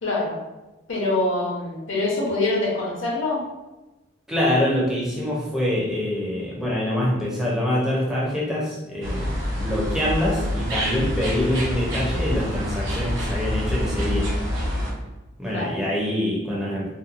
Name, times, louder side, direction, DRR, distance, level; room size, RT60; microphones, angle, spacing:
voice 1, 0.0-0.4 0.9-3.4 15.5-15.7, left 2 dB, 70° left, -4 dB, 0.8 m, -24 dB
voice 2, 4.3-14.3 15.4-16.9, left 1 dB, 5° right, -6 dB, 0.5 m, -25 dB
sound 1, 9.0-14.9, equal, 60° right, 0.7 m, -26 dB
2.8 x 2.1 x 2.4 m, 1.1 s
head